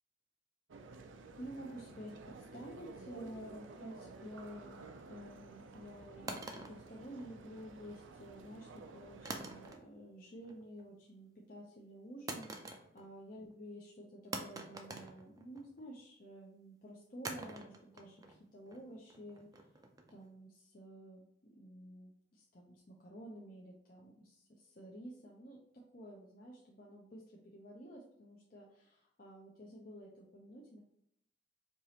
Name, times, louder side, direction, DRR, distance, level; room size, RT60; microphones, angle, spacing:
sound 1, 0.7-9.8, right 3 dB, 85° right, 0.5 m, -53 dB
voice 1, 1.4-19.5 20.1-25.6 25.9-30.8, equal, 45° left, -3 dB, 0.6 m, -51 dB
sound 2, 6.3-7.7 9.3-10.1 10.4-10.9 12.3-13.2 13.5-13.6 14.3-15.8 17.2-20.3, right 2 dB, 20° right, 0.4 m, -46 dB
4.6 x 2.9 x 2.8 m, 0.74 s
head